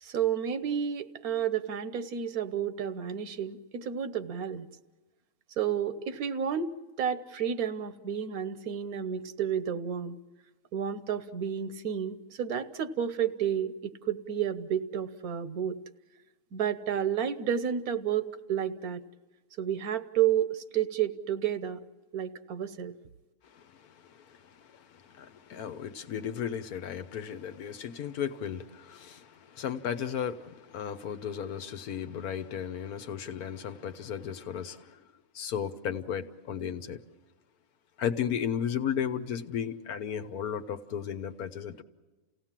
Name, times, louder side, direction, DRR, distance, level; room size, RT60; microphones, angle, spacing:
voice 1, 0.0-4.7 5.6-6.7 7.0-10.2 10.7-15.8 16.5-19.0 19.6-21.8 22.1-22.9, right 9 dB, 80° right, 1.4 m, -31 dB
voice 2, 23.4-35.0 35.3-37.0 38.0-41.8, left 8 dB, 90° left, 1.5 m, -35 dB
29.5 x 17.0 x 7.5 m
omnidirectional pair, 1.5 m